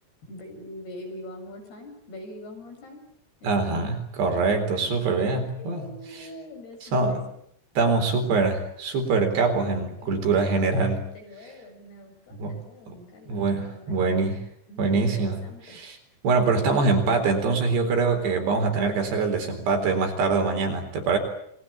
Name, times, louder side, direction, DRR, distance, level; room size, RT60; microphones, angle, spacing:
voice 1, 0.3-3.1 3.4-3.7 5.4-7.3 10.0-14.2 14.7-15.8, left 1 dB, 55° left, 5 dB, 8.9 m, -44 dB
voice 2, 3.4-5.9 6.1-6.3 6.9-7.3 7.8-11.0 12.4-12.6 12.9-13.0 13.3-14.4 14.8-15.4 15.7-16.0 16.2-21.2, right 4 dB, 60° right, 5 dB, 6.2 m, -24 dB
28.0 x 22.5 x 8.7 m, 0.69 s
omnidirectional pair, 5.5 m